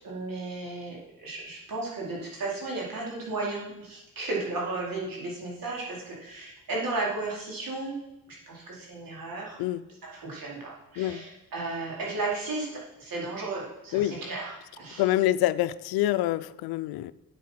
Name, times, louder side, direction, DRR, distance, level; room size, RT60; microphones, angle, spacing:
voice 1, 0.0-8.0 8.5-9.6 10.0-15.1, right 3 dB, 65° right, -4 dB, 4.3 m, -34 dB
voice 2, 15.0-17.1, left 14 dB, 90° left, 16 dB, 0.5 m, -26 dB
8.5 x 8.4 x 5.7 m, 0.92 s
cardioid pair, 70°, 37 cm